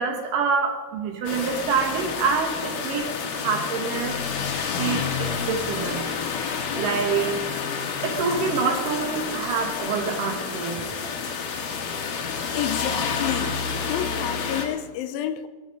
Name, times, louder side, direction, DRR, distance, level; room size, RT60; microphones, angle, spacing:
voice 1, 0.0-3.1 3.4-4.2 4.8-6.1 6.7-7.5 8.0-10.8, right 5 dB, 70° right, 2.9 m, -26 dB
sound 1, 1.3-14.7, left 6 dB, 70° left, 3.1 m, -29 dB
voice 2, 12.5-13.6 13.9-15.5, left 11 dB, 90° left, 2.6 m, -29 dB
19.5 x 12.0 x 5.4 m
omnidirectional pair, 4.0 m